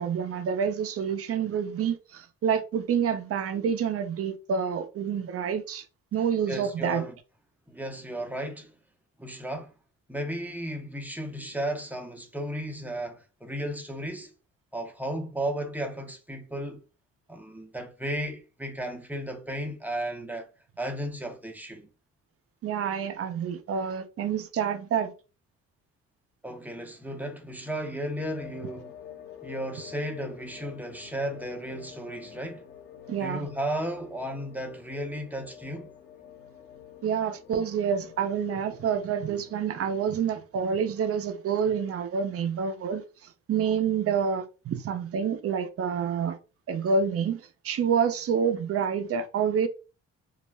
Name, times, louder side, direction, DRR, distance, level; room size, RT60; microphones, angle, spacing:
voice 1, 0.0-5.8 6.1-7.1 22.6-25.1 33.1-33.5 37.0-43.0 43.5-46.4 46.7-49.7, right 7 dB, 50° right, 0.5 m, -28 dB
voice 2, 6.5-7.1 7.7-8.7 9.2-9.7 10.1-14.3 14.7-16.8 17.3-20.5 20.8-21.9 26.4-28.9 29.4-32.6 33.1-35.9, right 1 dB, 5° right, 0.6 m, -34 dB
sound 1, 28.3-40.1, left 9 dB, 40° left, 0.8 m, -48 dB
2.4 x 2.0 x 3.2 m
cardioid pair, 90°, 30 cm